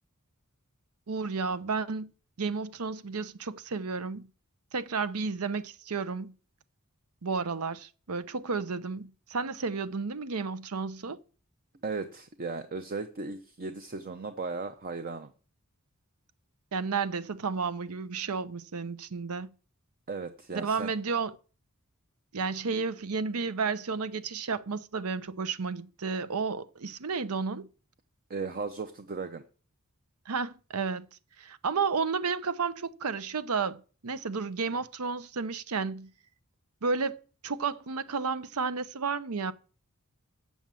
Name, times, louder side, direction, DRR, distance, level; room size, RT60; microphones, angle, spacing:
voice 1, 1.1-2.1 2.4-4.3 4.7-6.3 7.2-11.2 16.7-19.5 20.6-21.3 22.3-27.7 30.3-31.1 31.4-36.1 36.8-39.5, right 5 dB, 75° right, 0.7 m, -32 dB
voice 2, 11.8-15.3 20.1-20.9 28.3-29.4, right 4 dB, 40° right, 0.7 m, -36 dB
7.2 x 7.2 x 7.4 m
head